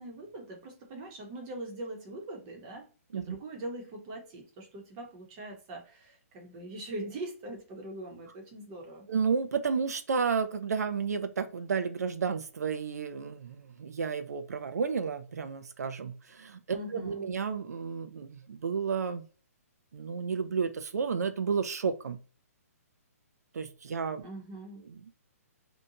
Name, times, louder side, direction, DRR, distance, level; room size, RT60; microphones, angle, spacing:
voice 1, 0.0-9.1 16.7-17.3 24.2-24.9, right 1 dB, 25° right, 1 dB, 0.8 m, -42 dB
voice 2, 9.1-19.3 19.9-22.2 23.5-24.2 24.9-25.2, right 5 dB, 90° right, 9 dB, 0.4 m, -32 dB
2.6 x 2.2 x 2.8 m, 0.38 s
hypercardioid pair, 160°, 8 cm